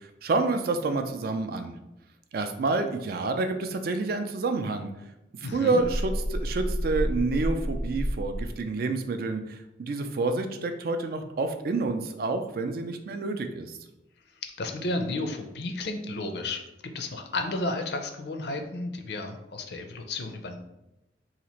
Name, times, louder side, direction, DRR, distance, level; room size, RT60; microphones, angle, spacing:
voice 1, 0.0-1.8 2.3-4.9 5.4-13.8, right 3 dB, 50° right, 7 dB, 0.3 m, -28 dB
voice 2, 5.4-5.8 14.4-16.6 16.9-20.6, left 2 dB, 60° left, 5 dB, 0.4 m, -32 dB
sound 1, 5.8-8.6, equal, 10° left, 0.5 m, -30 dB
2.8 x 2.5 x 4.2 m, 0.92 s
head